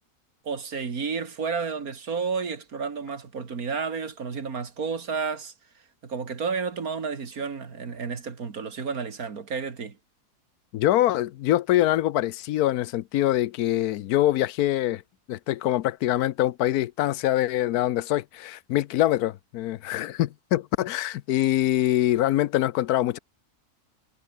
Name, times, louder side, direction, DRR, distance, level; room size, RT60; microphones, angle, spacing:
voice 1, 0.4-5.5 6.0-10.0, right 5 dB, 70° right, 2.6 m, -31 dB
voice 2, 10.7-15.0 15.3-23.2, left 14 dB, 80° left, 1.1 m, -24 dB
omnidirectional pair, 1.6 m